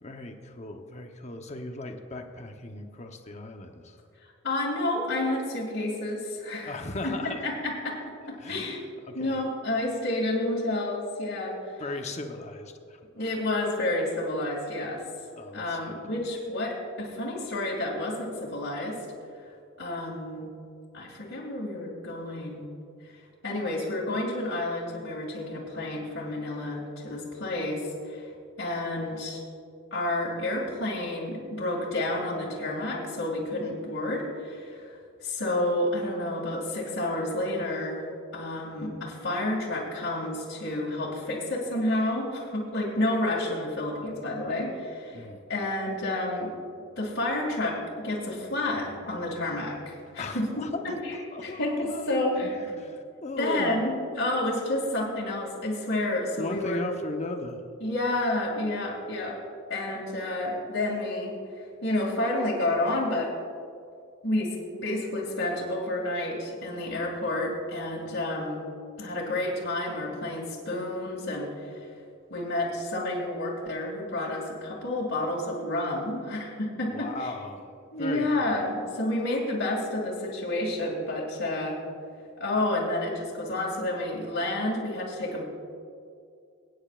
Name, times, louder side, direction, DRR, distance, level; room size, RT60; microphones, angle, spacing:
voice 1, 0.0-4.0 6.6-7.5 8.4-8.8 9.1-9.4 11.8-13.0 15.3-16.0 45.1-45.4 50.2-50.9 51.3-52.0 52.4-53.8 56.4-57.6 76.9-77.7 78.0-78.3, left 2 dB, 35° left, 4 dB, 0.9 m, -37 dB
voice 2, 4.4-6.7 7.0-7.1 7.4-8.8 9.1-11.8 13.1-15.0 15.5-19.0 19.8-20.5 20.9-22.7 23.0-23.2 23.4-28.3 28.6-29.4 29.9-34.9 35.2-38.1 38.3-46.5 47.0-51.2 51.4-52.6 53.4-56.8 57.8-59.4 59.7-63.3 64.2-68.6 69.0-71.9 72.3-77.3 77.9-81.8 82.4-85.5, left 1 dB, 70° left, -6 dB, 2.4 m, -30 dB
23.5 x 9.7 x 2.5 m, 2.4 s
head